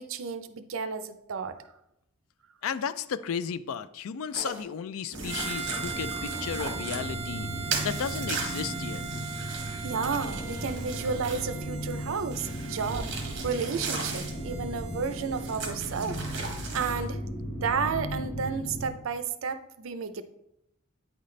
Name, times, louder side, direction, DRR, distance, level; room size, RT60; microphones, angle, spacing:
voice 1, 0.0-1.6 9.5-16.2 16.7-20.2, right 5 dB, 80° right, 10 dB, 0.5 m, -32 dB
voice 2, 2.6-7.5 7.8-9.0, left 7 dB, 90° left, 14 dB, 0.4 m, -34 dB
sound 1, 4.3-4.6 5.1-7.1 7.7-11.6 12.3-14.4 15.4-17.1, right 4 dB, 55° right, 1.1 m, -38 dB
sound 2, 5.1-18.9, equal, 45° left, 1.3 m, -36 dB
Harmonica, 5.3-15.6, right 6 dB, 30° right, 0.7 m, -41 dB
8.9 x 4.0 x 3.2 m, 0.81 s
head